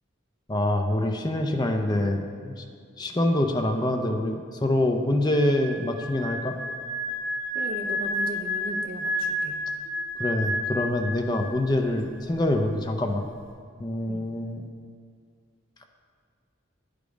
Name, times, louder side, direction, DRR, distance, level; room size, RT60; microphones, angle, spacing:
voice 1, 0.5-2.6 3.0-6.6 10.2-13.3 13.8-14.6, left 1 dB, 20° left, 4 dB, 0.5 m, -25 dB
sound 1, 5.3-11.7 11.9-12.2, left 1 dB, 60° right, 2.3 m, -31 dB
voice 2, 7.5-9.6 14.1-14.3, right 1 dB, 45° right, 3 dB, 0.7 m, -37 dB
9.6 x 5.1 x 5.0 m, 2.2 s
head